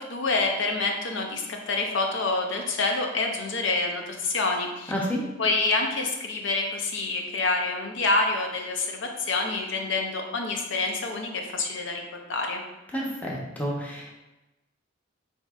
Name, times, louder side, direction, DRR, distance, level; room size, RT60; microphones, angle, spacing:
voice 1, 0.0-4.9 5.4-12.0 12.3-12.6, left 3 dB, 75° left, 2 dB, 0.6 m, -27 dB
voice 2, 4.9-5.2 12.9-14.1, equal, 10° left, -3 dB, 0.7 m, -30 dB
7.1 x 2.7 x 2.4 m, 1.0 s
head